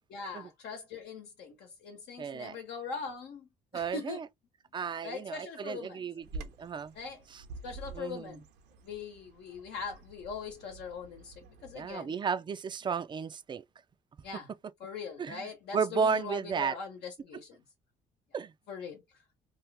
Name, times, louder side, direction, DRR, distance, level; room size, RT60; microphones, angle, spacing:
voice 1, 0.1-4.2 5.0-6.0 6.9-7.2 7.6-8.4 8.8-12.1 14.2-14.5 14.8-17.6 18.7-19.0, left 5 dB, 75° left, 1.1 m, -41 dB
voice 2, 2.2-2.6 3.7-4.3 4.7-6.9 7.3-7.4 7.9-8.4 11.7-13.6 15.2-16.8 18.3-18.5, right 6 dB, 25° right, 0.4 m, -33 dB
Bird vocalization bird call bird song, 6.2-11.9, right 3 dB, 85° right, 0.9 m, -48 dB
2.9 x 2.4 x 3.3 m
cardioid pair, 110°, 17 cm